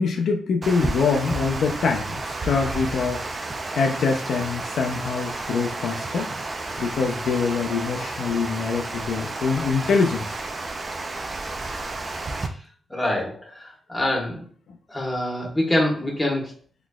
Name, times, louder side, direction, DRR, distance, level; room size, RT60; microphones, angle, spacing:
voice 1, 0.0-3.3 3.7-6.3 6.8-10.4, left 5 dB, 75° left, 3 dB, 0.5 m, -24 dB
Water, 0.6-12.5, right 2 dB, 30° right, 0.4 m, -31 dB
voice 2, 12.9-14.5 14.9-16.5, left 1 dB, 10° left, -1 dB, 1.1 m, -25 dB
4.0 x 3.0 x 2.3 m, 0.42 s
wide cardioid pair, 160°, 0 cm